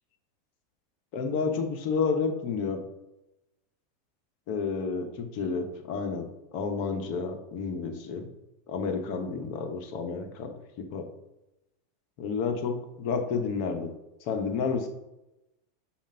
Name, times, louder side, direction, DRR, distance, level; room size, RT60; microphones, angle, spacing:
voice 1, 1.1-2.8 4.5-8.3 8.7-11.1 12.2-13.9 14.3-14.9, left 5 dB, 60° left, 5 dB, 1.1 m, -30 dB
7.0 x 2.6 x 5.7 m, 0.93 s
hypercardioid pair, 105°, 0 cm